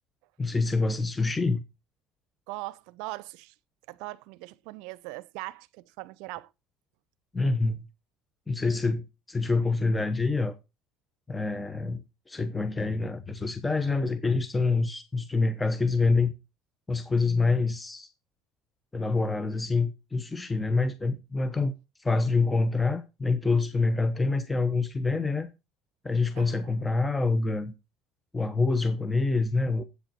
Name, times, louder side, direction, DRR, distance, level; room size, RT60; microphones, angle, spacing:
voice 1, 0.4-1.6 7.3-7.8 8.5-10.5 11.3-16.3 16.9-18.1 18.9-21.7 22.0-25.5 26.0-27.7 28.3-29.8, left 3 dB, 15° left, 0.9 m, -26 dB
voice 2, 2.5-3.5 3.9-6.5 26.4-26.8, right 20 dB, 75° right, 0.6 m, -40 dB
8.2 x 7.8 x 4.5 m
supercardioid pair, 100°, 0 cm